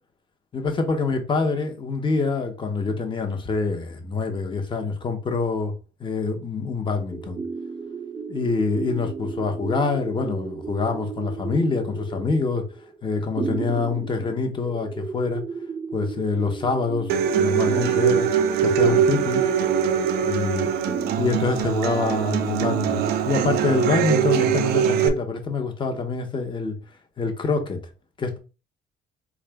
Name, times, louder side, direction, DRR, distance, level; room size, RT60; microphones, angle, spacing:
voice 1, 0.5-5.7 6.0-7.4 8.3-12.6 13.0-15.4 15.9-18.3 18.6-19.5 20.2-20.7 21.2-26.8 27.2-27.8 28.2-28.4, left 4 dB, 30° left, 0.9 m, -25 dB
sound 1, 7.1-23.2, right 5 dB, 20° right, 0.4 m, -34 dB
Human voice / Acoustic guitar, 17.1-25.1, right 8 dB, 70° right, 0.5 m, -22 dB
3.8 x 2.4 x 3.4 m
cardioid pair, 110°, 17 cm